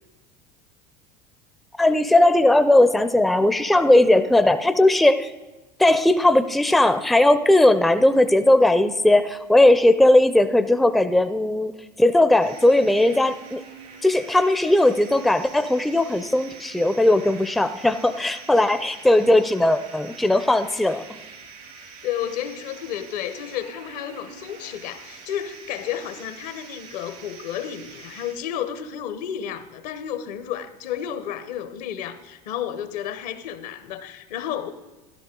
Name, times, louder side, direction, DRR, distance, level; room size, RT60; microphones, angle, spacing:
voice 1, 1.8-5.3 5.8-11.7 12.0-13.6 14.0-21.2, left 1 dB, ahead, 0.5 m, -18 dB
sound 1, 12.4-28.3, right 5 dB, 80° right, 3.2 m, -45 dB
voice 2, 22.0-34.7, left 10 dB, 70° left, 1.0 m, -32 dB
13.0 x 12.0 x 3.8 m
hypercardioid pair, 85°, 21 cm